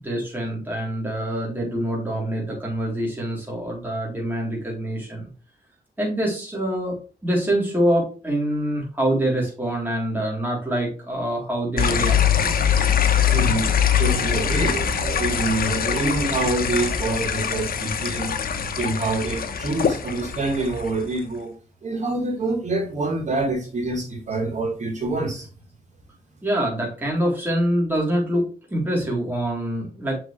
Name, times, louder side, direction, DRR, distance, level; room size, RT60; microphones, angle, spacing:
voice 1, 0.0-5.3 6.0-7.0 7.2-12.5 26.4-30.2, right 1 dB, 10° right, -3 dB, 3.7 m, -25 dB
sound 1, 11.8-21.2, left 8 dB, 70° left, 1.1 m, -23 dB
voice 2, 13.3-18.3 18.8-21.5 21.8-25.5, right 2 dB, 50° right, -3 dB, 3.9 m, -26 dB
6.8 x 5.9 x 3.3 m, 0.37 s
cardioid pair, 80°, 16 cm